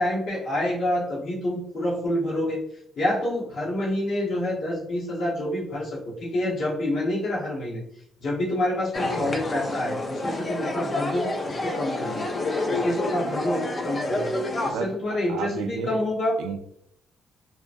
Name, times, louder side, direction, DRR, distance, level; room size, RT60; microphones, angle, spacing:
voice 1, 0.0-2.6 3.0-7.8 8.2-12.2 12.7-14.3 14.6-16.4, left 1 dB, 65° left, 1.1 m, -27 dB
sound 1, 8.9-14.7, left 2 dB, 35° left, 0.5 m, -28 dB
voice 2, 15.3-16.0 16.4-16.6, right 6 dB, 90° right, 0.3 m, -31 dB
2.8 x 2.2 x 2.5 m
cardioid pair, 90°, 0 cm